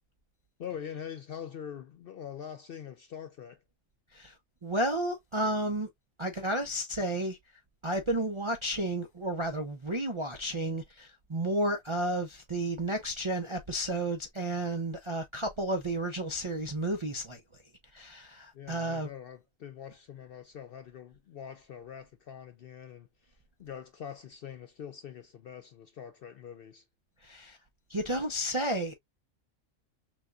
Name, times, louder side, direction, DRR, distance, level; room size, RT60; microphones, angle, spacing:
voice 1, 0.6-3.6 18.5-26.8, left 8 dB, 65° left, 0.6 m, -44 dB
voice 2, 4.6-5.9 6.2-7.4 7.8-17.4 17.9-19.1 27.2-27.6 27.9-28.9, right 1 dB, 45° right, 0.4 m, -32 dB
6.2 x 2.3 x 2.4 m
omnidirectional pair, 1.4 m